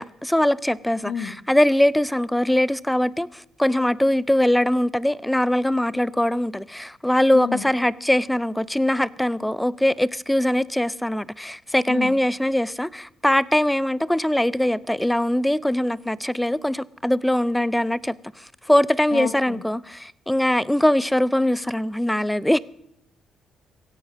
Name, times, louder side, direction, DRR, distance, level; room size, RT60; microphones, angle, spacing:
voice 1, 0.0-22.6, left 1 dB, 5° left, 0.4 m, -22 dB
voice 2, 7.3-7.6 11.9-12.1 19.1-19.6, left 9 dB, 90° left, 0.9 m, -30 dB
16.5 x 10.5 x 5.1 m
cardioid pair, 90°, 0 cm